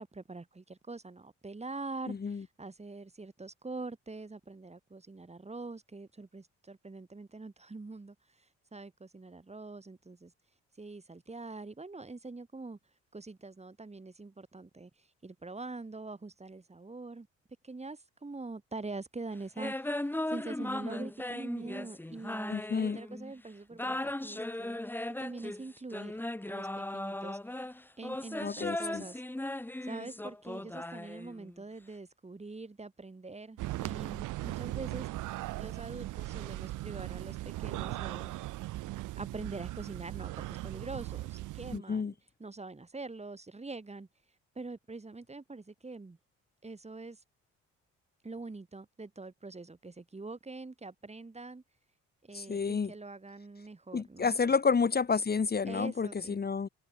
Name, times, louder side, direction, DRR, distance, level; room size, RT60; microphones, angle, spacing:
voice 1, 0.0-8.2 8.7-10.3 10.8-12.8 13.1-17.3 17.6-24.8 25.2-27.4 28.0-29.2 29.8-35.1 35.6-38.3 39.2-42.1 42.4-44.1 44.6-46.2 46.6-47.2 48.2-51.6 52.2-54.3 55.7-56.4, right 3 dB, 20° right, 7.8 m, -44 dB
voice 2, 2.1-2.4 22.5-23.0 28.4-29.1 41.7-42.1 52.3-52.9 53.9-56.7, left 5 dB, 30° left, 1.8 m, -30 dB
sound 1, 19.6-23.3 23.7-31.6, left 1 dB, 5° left, 1.1 m, -37 dB
sound 2, 33.6-41.8, right 17 dB, 90° right, 1.1 m, -38 dB
cardioid pair, 90°, 30 cm